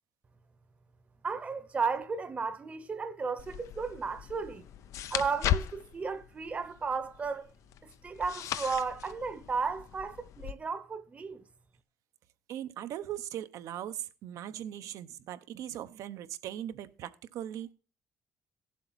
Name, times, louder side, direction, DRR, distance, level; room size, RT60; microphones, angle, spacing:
voice 1, 1.2-4.6 5.1-7.5 8.0-11.4, right 5 dB, 25° right, 0.8 m, -34 dB
sound 1, 3.4-10.5, left 11 dB, 70° left, 0.5 m, -37 dB
voice 2, 12.5-17.7, right 11 dB, 80° right, 0.9 m, -39 dB
17.0 x 7.5 x 4.1 m
cardioid pair, 155°, 5 cm